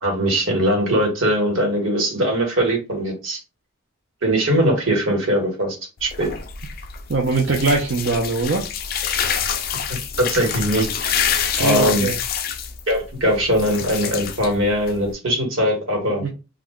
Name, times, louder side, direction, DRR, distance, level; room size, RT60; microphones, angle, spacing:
voice 1, 0.0-3.4 4.2-5.8 6.0-6.3 10.2-11.1 11.6-12.1 12.9-16.2, equal, 80° right, 0 dB, 1.3 m, -20 dB
sound 1, 6.0-15.1, left 7 dB, 45° left, 0.3 m, -27 dB
voice 2, 7.1-8.7 11.6-12.1 16.2-16.3, right 3 dB, 55° right, -1 dB, 0.5 m, -21 dB
2.4 x 2.1 x 3.5 m, 0.30 s
head